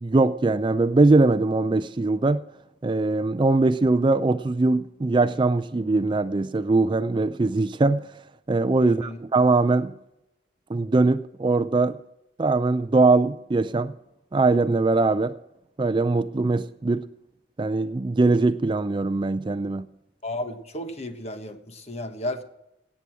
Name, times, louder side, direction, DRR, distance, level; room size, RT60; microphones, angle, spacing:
voice 1, 0.0-2.4 2.8-8.1 8.5-9.9 10.7-12.0 12.4-13.9 14.3-15.3 15.8-17.0 17.6-19.9, right 3 dB, 25° right, 0.4 m, -21 dB
voice 2, 8.8-9.2 20.2-22.4, left 1 dB, 35° left, 1.3 m, -33 dB
17.5 x 8.4 x 6.2 m
head